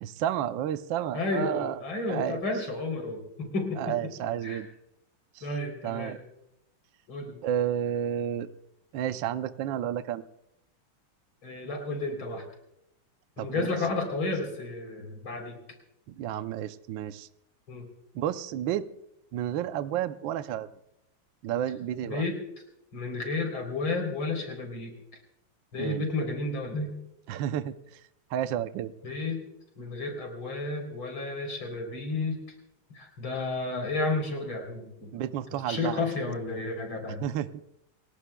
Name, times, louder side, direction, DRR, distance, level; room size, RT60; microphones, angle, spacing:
voice 1, 0.0-1.8 2.1-2.4 3.8-4.7 5.3-5.5 5.8-6.2 7.4-8.5 8.9-10.2 13.4-13.7 16.1-17.3 18.1-18.8 19.3-20.7 21.4-22.2 25.8-26.1 27.3-28.0 28.3-28.9 35.1-36.1 37.1-37.5, right 10 dB, 70° right, 11 dB, 1.3 m, -31 dB
voice 2, 1.1-4.0 4.4-4.6 5.4-6.2 7.1-7.4 11.4-12.4 13.4-15.6 17.7-17.9 22.0-22.4 22.9-24.9 25.7-27.0 29.0-29.4 29.8-32.4 32.9-35.1 35.7-37.2, left 3 dB, 70° left, 2 dB, 4.3 m, -32 dB
30.0 x 17.0 x 2.3 m, 0.83 s
omnidirectional pair, 2.3 m